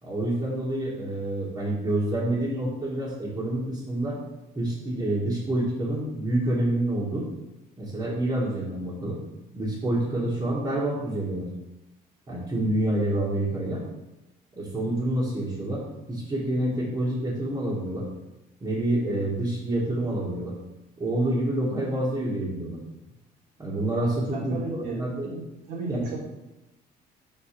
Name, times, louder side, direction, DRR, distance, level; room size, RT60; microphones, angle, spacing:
voice 1, 0.0-4.2 4.6-7.3 7.8-9.2 9.5-11.5 12.3-13.8 14.6-18.1 18.6-20.6 21.0-22.8 23.6-25.3 25.9-26.0, right 1 dB, 25° right, -7 dB, 2.0 m, -27 dB
voice 2, 24.3-25.4 25.7-26.2, right 3 dB, 85° right, -3 dB, 2.5 m, -35 dB
5.1 x 4.5 x 5.9 m, 0.97 s
cardioid pair, 110°, 17 cm